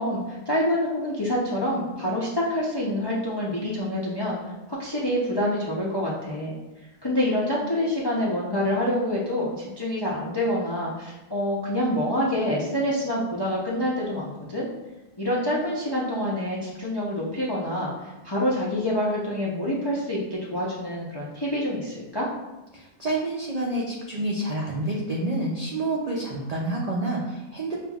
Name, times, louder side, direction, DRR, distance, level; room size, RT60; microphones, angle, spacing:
voice 1, 0.0-4.4 4.7-6.5 7.0-14.7 15.2-22.3, left 1 dB, 30° left, -5 dB, 0.4 m, -26 dB
voice 2, 22.7-27.8, right 2 dB, 60° right, -3 dB, 0.4 m, -28 dB
6.8 x 2.5 x 2.3 m, 1.0 s
omnidirectional pair, 1.4 m